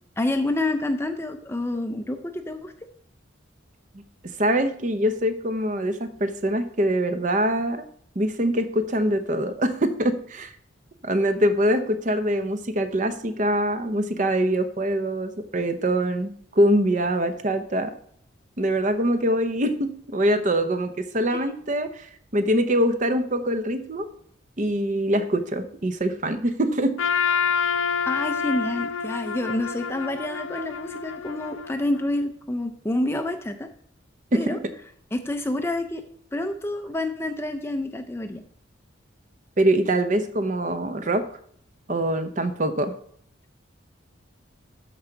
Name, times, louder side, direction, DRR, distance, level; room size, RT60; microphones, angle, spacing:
voice 1, 0.2-2.7 21.3-21.4 28.1-33.7 34.3-34.6 35.1-36.0 36.3-38.4, left 1 dB, 10° left, 7 dB, 0.5 m, -28 dB
voice 2, 4.4-7.8 8.2-10.5 11.0-17.9 18.6-22.1 22.3-24.1 24.6-26.9 34.3-34.7 39.6-41.3 41.9-42.9, right 1 dB, 40° right, 9 dB, 0.7 m, -24 dB
Trumpet, 27.0-32.1, left 6 dB, 85° left, 0.6 m, -27 dB
13.0 x 4.6 x 3.9 m, 0.64 s
head